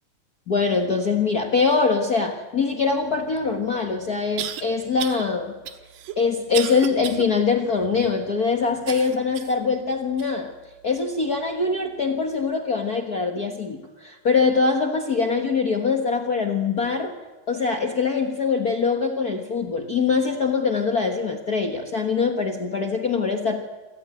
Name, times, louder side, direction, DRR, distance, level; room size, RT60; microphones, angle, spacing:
voice 1, 0.5-5.5 6.2-10.5 10.8-17.1 17.5-23.7, left 4 dB, 55° left, 3 dB, 1.0 m, -23 dB
sound 1, 3.4-3.5 4.4-4.6 5.0-5.2 5.7-7.3 7.7-7.8 8.9-9.6 10.2-10.3 11.1-11.2, right 10 dB, 80° right, 2.9 m, -33 dB
26.5 x 14.5 x 9.2 m, 1.2 s
omnidirectional pair, 3.8 m